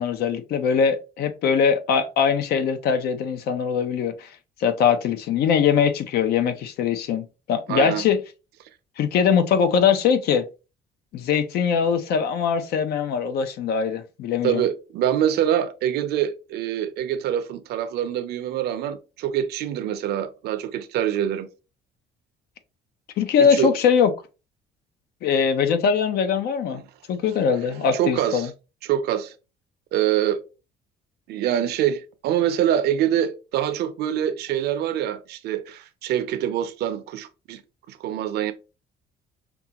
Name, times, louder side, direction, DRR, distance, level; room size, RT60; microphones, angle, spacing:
voice 1, 0.0-4.3 4.6-8.2 9.0-10.5 11.1-14.6 23.2-24.1 25.2-26.8 27.1-28.5, left 7 dB, 70° left, 0.7 m, -21 dB
voice 2, 7.7-8.1 14.4-21.5 23.4-23.7 26.7-26.8 27.2-27.4 27.7-28.5 28.8-29.3 29.9-30.4 31.3-37.6 37.9-38.5, right 10 dB, 75° right, 0.6 m, -25 dB
5.3 x 2.4 x 2.9 m
cardioid pair, 110°, 17 cm